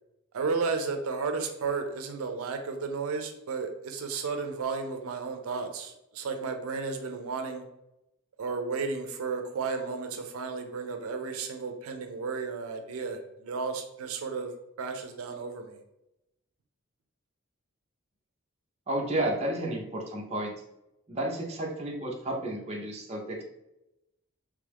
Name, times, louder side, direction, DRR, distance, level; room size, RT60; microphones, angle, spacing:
voice 1, 0.3-7.6 8.4-14.5 14.8-15.8, right 4 dB, 90° right, 6 dB, 0.4 m, -33 dB
voice 2, 18.9-20.5 21.1-23.4, right 1 dB, 30° right, -1 dB, 0.6 m, -32 dB
3.1 x 2.4 x 3.4 m, 0.90 s
head